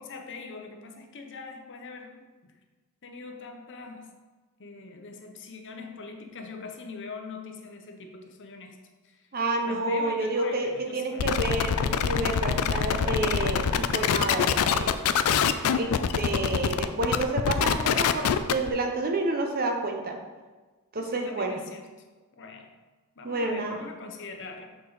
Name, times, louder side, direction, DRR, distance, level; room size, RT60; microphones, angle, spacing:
voice 1, 0.0-2.6 3.0-4.1 4.6-9.3 9.6-11.6 20.9-21.9 22.4-22.7 23.2-24.8, left 4 dB, 55° left, 4 dB, 0.8 m, -43 dB
voice 2, 9.3-15.0 15.7-20.2 20.9-21.6 23.2-23.8, right 2 dB, 45° right, 3 dB, 0.8 m, -29 dB
sound 1, 11.2-18.7, left 7 dB, 75° left, 0.4 m, -25 dB
6.4 x 5.0 x 4.0 m, 1.3 s
head